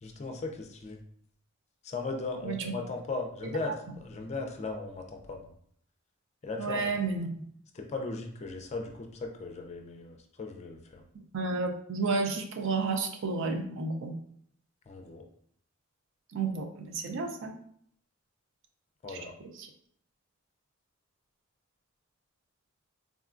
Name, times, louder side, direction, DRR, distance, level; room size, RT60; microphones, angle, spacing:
voice 1, 0.0-1.0 1.8-5.5 6.4-6.9 7.7-11.0 14.9-15.2 19.0-19.3, left 3 dB, 30° left, 3 dB, 0.4 m, -37 dB
voice 2, 6.6-7.3 11.3-14.2 16.3-17.5, right 4 dB, 60° right, 4 dB, 0.5 m, -31 dB
3.7 x 2.2 x 2.4 m, 0.64 s
head